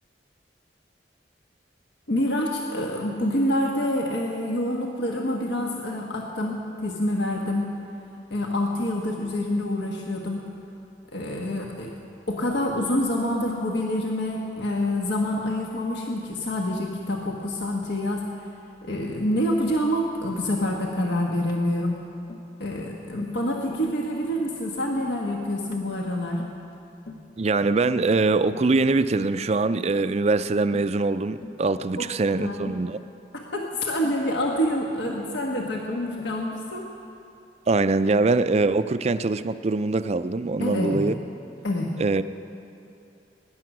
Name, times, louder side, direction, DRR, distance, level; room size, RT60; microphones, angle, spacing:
voice 1, 2.1-7.7 8.3-10.5 11.1-11.9 12.3-18.2 18.8-22.0 22.6-26.5 32.0-32.1 32.4-32.6 33.3-36.9 40.6-41.0 41.6-41.9, left 1 dB, 75° left, 0 dB, 1.3 m, -27 dB
Tap, 21.5-21.7 22.3-22.5 23.2-23.4 23.7-23.9 24.4-24.6 25.0-25.2 25.7-25.9 26.4-26.6 27.1-27.3 27.9-28.1 28.5-28.8 29.2-29.4 29.9-30.0 30.7-31.0 31.4-31.6 32.6-32.9 34.0-34.2 35.0-35.3 35.6-35.9 36.2-36.4, left 3 dB, 55° left, 1.1 m, -42 dB
voice 2, 27.4-33.0 37.7-41.2 42.0-42.2, right 3 dB, 35° right, 12 dB, 0.4 m, -23 dB
20.0 x 10.5 x 6.1 m, 2.7 s
head